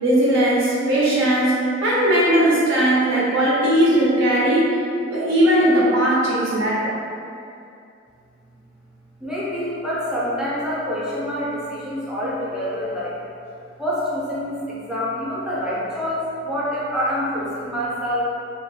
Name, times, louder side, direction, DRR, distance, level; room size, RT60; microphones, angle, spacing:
voice 1, 0.0-4.7 5.1-6.9, right 1 dB, 75° right, -7 dB, 0.6 m, -18 dB
voice 2, 9.2-13.1 13.8-18.3, equal, 5° right, -9 dB, 0.5 m, -26 dB
2.2 x 2.0 x 3.1 m, 2.5 s
head